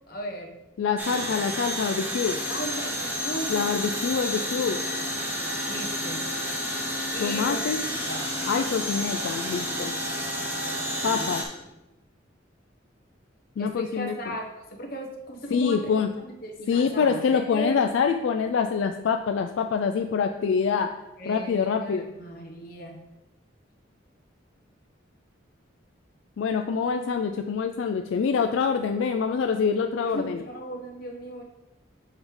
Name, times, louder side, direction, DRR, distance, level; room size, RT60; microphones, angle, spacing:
voice 1, 0.1-0.6 1.1-1.3 2.3-3.7 5.7-6.3 7.1-8.3 11.0-11.3 13.6-15.9 16.2-17.8 21.2-23.0 30.1-31.4, equal, 50° left, 1 dB, 1.0 m, -37 dB
voice 2, 0.8-2.4 3.5-4.8 7.2-7.8 8.5-9.9 11.0-11.4 13.6-14.4 15.5-16.1 16.7-20.9 21.3-22.1 26.4-30.4, left 6 dB, 75° left, 6 dB, 0.3 m, -25 dB
sound 1, 1.0-11.4, equal, 10° right, 0.8 m, -30 dB
7.3 x 4.8 x 3.2 m, 0.99 s
head